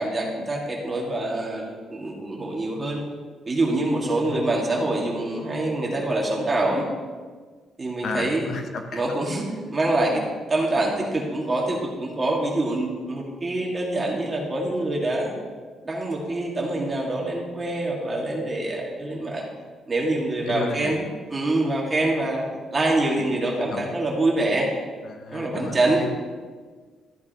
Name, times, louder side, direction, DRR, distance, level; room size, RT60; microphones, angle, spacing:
voice 1, 0.0-3.0 3.4-6.9 7.8-8.5 8.9-15.3 15.8-19.4 19.9-21.0 21.3-22.4 22.7-24.7 25.3-26.0, right 2 dB, 25° right, -2 dB, 2.0 m, -25 dB
voice 2, 8.0-9.0 20.4-21.0 23.2-23.3 23.6-23.9 25.0-26.1, left 4 dB, 55° left, 5 dB, 0.9 m, -33 dB
13.5 x 8.4 x 3.0 m, 1.5 s
cardioid pair, 125°, 0 cm